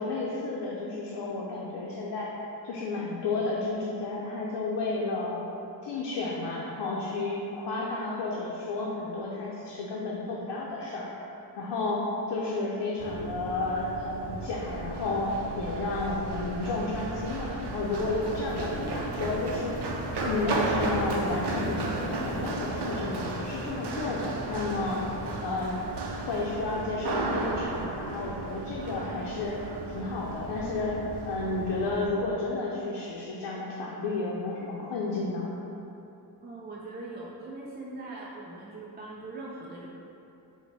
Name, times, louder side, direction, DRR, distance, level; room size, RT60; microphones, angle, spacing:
voice 1, 0.0-2.3 2.6-5.4 5.8-12.0 12.3-15.3 15.6-19.7 20.2-25.0 25.4-25.8 26.3-29.5 29.9-30.9 31.3-35.5, left 3 dB, 75° left, -4 dB, 0.6 m, -32 dB
Run, 13.0-32.1, right 2 dB, 70° right, 0.6 m, -34 dB
sound 1, 19.5-25.3, left 1 dB, 10° left, 0.9 m, -42 dB
voice 2, 36.4-39.9, right 2 dB, 25° right, -4 dB, 0.3 m, -41 dB
4.4 x 2.2 x 4.0 m, 2.9 s
wide cardioid pair, 95°, 41 cm